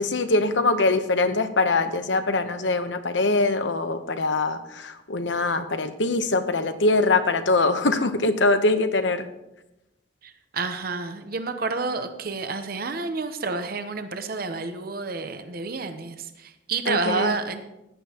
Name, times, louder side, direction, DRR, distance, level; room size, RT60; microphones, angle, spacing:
voice 1, 0.0-9.3 16.9-17.3, left 3 dB, 85° left, 9 dB, 0.9 m, -23 dB
voice 2, 10.5-17.6, right 4 dB, 55° right, 8 dB, 0.8 m, -29 dB
15.5 x 10.5 x 2.9 m, 0.93 s
head